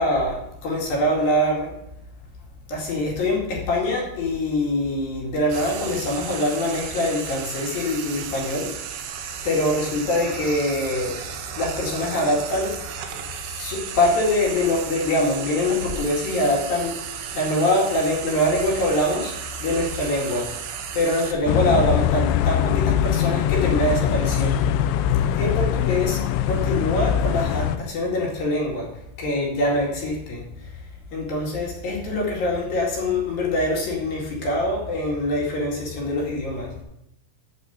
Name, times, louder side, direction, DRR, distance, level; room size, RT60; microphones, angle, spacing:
voice 1, 0.0-1.7 2.7-8.7 9.4-11.2 11.6-12.8 13.4-17.0 17.3-20.5 20.9-24.7 25.4-30.8 31.1-36.8, left 1 dB, 55° left, -2 dB, 3.5 m, -24 dB
Frying (food), 5.5-21.3, right 8 dB, 85° right, 3.6 m, -34 dB
sound 1, 21.5-27.8, left 10 dB, 80° left, 2.8 m, -22 dB
11.5 x 5.2 x 8.1 m, 0.82 s
omnidirectional pair, 5.6 m